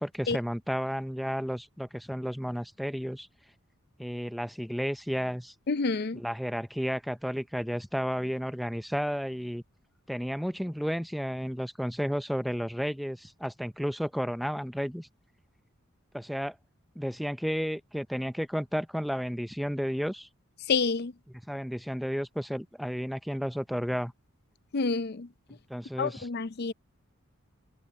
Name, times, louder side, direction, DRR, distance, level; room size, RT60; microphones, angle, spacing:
voice 1, 0.0-3.3 4.0-5.5 6.1-9.6 10.1-15.1 16.1-16.6 17.0-20.3 21.5-24.1 25.7-26.3, equal, ahead, 0.5 m, -32 dB
voice 2, 5.7-6.2 20.7-21.1 24.7-25.3 26.0-26.7, left 4 dB, 50° left, 0.5 m, -28 dB
head